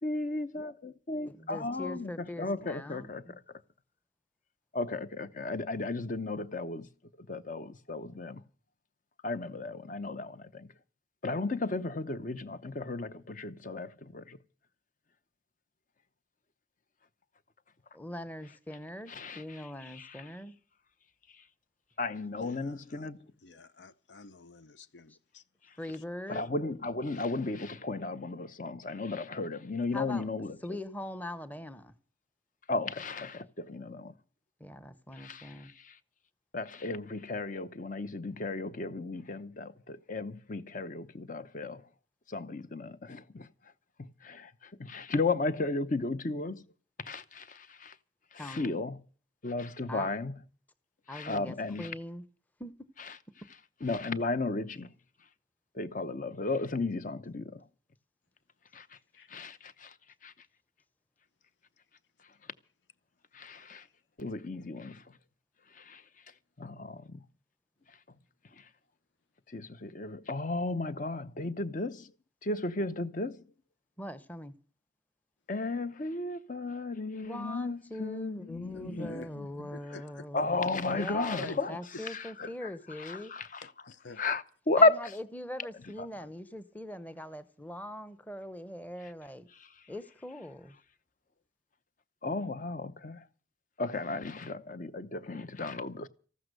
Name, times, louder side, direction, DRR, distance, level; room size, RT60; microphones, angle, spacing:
voice 1, 0.0-3.4 4.7-6.9 7.2-8.4 9.2-10.7 11.2-14.4 19.1-20.3 21.3-21.4 22.0-23.3 26.3-30.8 32.7-34.1 35.1-36.0 36.5-41.9 42.3-43.5 44.0-46.6 47.0-48.0 48.3-49.0 49.4-50.4 51.1-51.9 53.8-54.9 55.7-57.6 58.7-59.0 59.3-59.9 60.2-60.3 63.3-63.9 64.2-65.2 65.7-66.0 66.6-67.2 68.5-68.7 69.5-72.1 72.4-73.4 75.5-79.5 80.3-81.7 82.0-83.6 84.2-85.1 86.0-86.1 89.6-89.7 92.2-93.2 93.8-96.1, left 3 dB, 45° left, 0.8 m, -34 dB
voice 2, 1.3-3.4 17.9-20.6 25.8-26.4 29.9-30.3 30.6-31.9 34.6-35.7 48.4-48.7 49.9-50.1 51.1-52.2 52.6-52.7 74.0-74.5 77.2-80.6 80.9-83.3 84.8-89.5 89.9-90.8, left 1 dB, 10° left, 0.9 m, -42 dB
voice 3, 22.3-23.1 23.4-25.4 26.0-26.1 27.2-27.3 59.1-59.4 63.8-63.9 78.7-79.3 79.7-80.3 81.4-82.0 83.6-84.2, left 3 dB, 75° left, 0.7 m, -48 dB
14.5 x 12.5 x 6.6 m
head